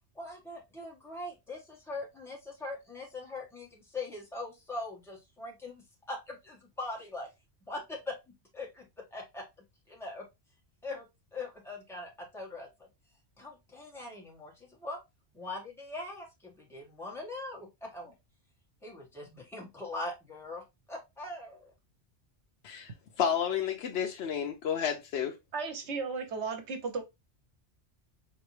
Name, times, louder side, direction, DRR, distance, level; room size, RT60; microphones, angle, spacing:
voice 1, 0.1-7.3 7.7-8.1 8.5-8.8 9.1-9.4 9.9-10.2 10.8-11.0 11.3-12.7 13.4-15.0 15.3-18.1 18.8-21.7, left 2 dB, ahead, 1.4 m, -41 dB
voice 2, 22.6-25.4, left 8 dB, 70° left, 0.9 m, -31 dB
voice 3, 25.5-27.0, right 4 dB, 75° right, 1.1 m, -35 dB
4.4 x 2.9 x 3.1 m
omnidirectional pair, 1.2 m